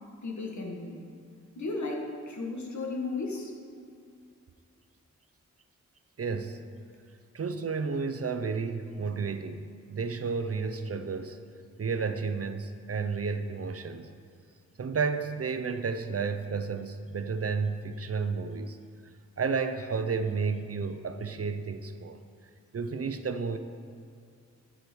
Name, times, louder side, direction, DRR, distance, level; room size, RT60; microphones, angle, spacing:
voice 1, 0.2-1.0 1.5-3.5, left 3 dB, 70° left, 0 dB, 1.8 m, -34 dB
voice 2, 6.2-6.6 7.3-11.4 11.8-14.1 14.8-18.8 19.4-22.2 22.7-23.6, right 5 dB, 50° right, 8 dB, 0.7 m, -32 dB
11.5 x 4.9 x 6.3 m, 2.3 s
cardioid pair, 65°, 30 cm